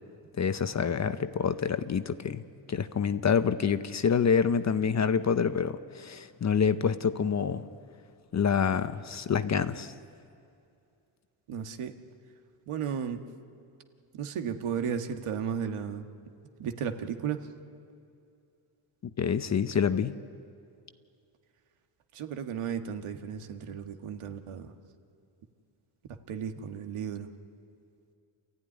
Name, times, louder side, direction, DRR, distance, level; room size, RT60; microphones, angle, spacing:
voice 1, 0.4-2.4 2.7-7.6 8.3-9.9 19.2-20.1, left 6 dB, 35° left, 0.7 m, -27 dB
voice 2, 11.5-12.0 12.7-13.2 14.1-16.0 16.6-17.5 22.1-24.7 26.3-27.3, right 7 dB, 80° right, 1.6 m, -34 dB
28.5 x 14.5 x 9.9 m
cardioid pair, 135°, 50 cm